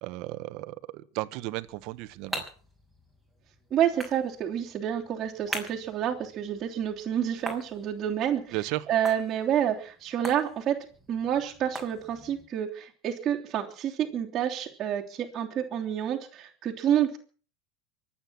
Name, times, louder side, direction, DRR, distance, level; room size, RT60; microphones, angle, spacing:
voice 1, 0.0-2.4 8.5-8.8, right 18 dB, 55° right, 13 dB, 1.4 m, -34 dB
sound 1, 1.6-12.5, right 1 dB, ahead, 6.2 m, -43 dB
voice 2, 3.7-8.6 8.9-17.2, right 10 dB, 30° right, -4 dB, 3.3 m, -29 dB
24.5 x 9.1 x 6.2 m, 0.41 s
supercardioid pair, 145°, 0 cm